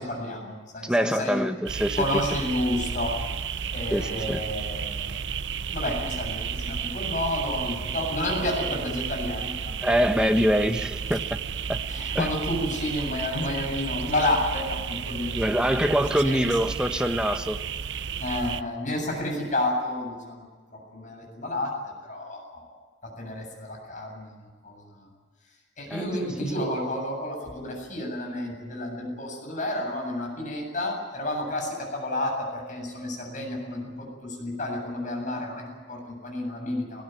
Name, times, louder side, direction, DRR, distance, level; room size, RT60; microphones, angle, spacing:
voice 1, 0.0-1.4 2.0-3.1 3.7-5.3 5.7-9.9 11.9-15.9 16.2-16.4 18.2-21.8 22.0-22.7 23.0-25.1 25.8-37.0, left 1 dB, 45° left, 1 dB, 7.8 m, -31 dB
voice 2, 0.8-2.0 3.9-4.4 9.8-11.4 11.7-11.8 12.1-12.3 15.3-17.6 25.9-26.1, equal, 5° right, 6 dB, 1.3 m, -24 dB
sound 1, 1.7-18.6, right 6 dB, 75° right, 0.7 m, -32 dB
20.0 x 19.5 x 9.3 m, 1.4 s
head